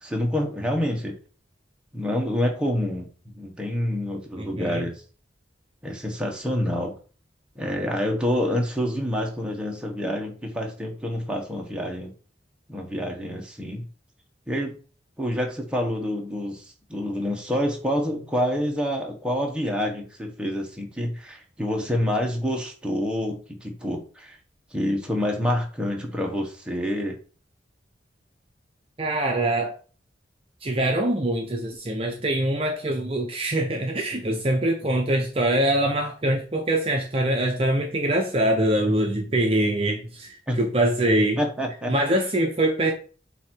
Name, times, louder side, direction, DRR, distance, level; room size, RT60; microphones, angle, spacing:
voice 1, 0.0-1.1 1.9-4.9 5.8-6.9 7.5-12.1 12.7-13.8 14.5-14.7 15.2-16.6 16.9-24.4 24.7-27.2 40.5-40.6 41.4-41.9, equal, 5° right, 1.3 m, -27 dB
voice 2, 4.4-4.8 29.0-29.8 30.6-41.4 41.9-42.9, right 1 dB, 30° right, 0.7 m, -24 dB
8.2 x 2.9 x 4.5 m
head